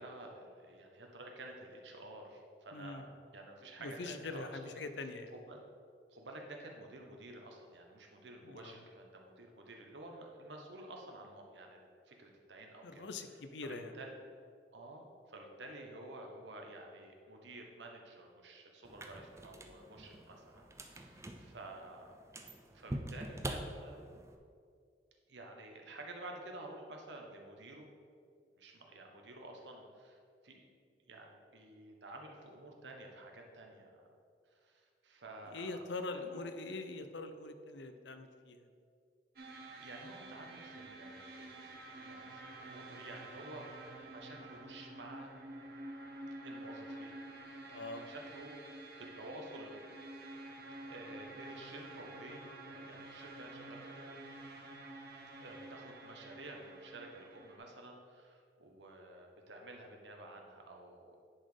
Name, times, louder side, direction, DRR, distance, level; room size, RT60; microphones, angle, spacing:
voice 1, 0.0-4.9 5.3-5.6 6.1-14.2 14.7-22.2 22.7-24.2 25.3-27.9 28.5-30.7 31.1-34.0 34.5-36.8 39.5-43.7 44.0-45.3 46.4-47.2 47.7-49.8 50.8-54.2 55.4-61.2, right 2 dB, 90° right, 1 dB, 1.2 m, -51 dB
voice 2, 2.7-3.1 3.8-5.3 8.4-8.8 12.8-13.9 35.5-38.6 47.6-48.1, left 3 dB, 85° left, 9 dB, 0.6 m, -43 dB
sound 1, 18.8-24.4, right 1 dB, 15° right, 0.5 m, -45 dB
sound 2, 39.4-57.6, right 2 dB, 60° right, 1.1 m, -50 dB
10.0 x 4.2 x 5.0 m, 2.3 s
head